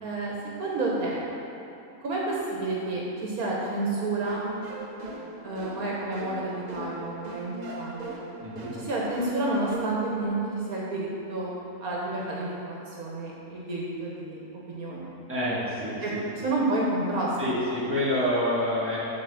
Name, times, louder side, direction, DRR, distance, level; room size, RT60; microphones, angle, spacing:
voice 1, 0.0-0.3 0.6-1.2 2.0-4.4 5.4-8.1 8.7-10.4 10.7-11.5 11.8-14.4 14.7-15.1 16.0-16.1 16.4-17.6, right 2 dB, 70° right, -4 dB, 1.5 m, -30 dB
sound 1, 4.2-10.2, right 2 dB, 40° right, 0.6 m, -40 dB
voice 2, 8.4-8.7 15.3-16.2 17.4-19.0, left 1 dB, 10° right, -9 dB, 1.6 m, -27 dB
7.6 x 4.1 x 6.8 m, 2.6 s
omnidirectional pair, 1.6 m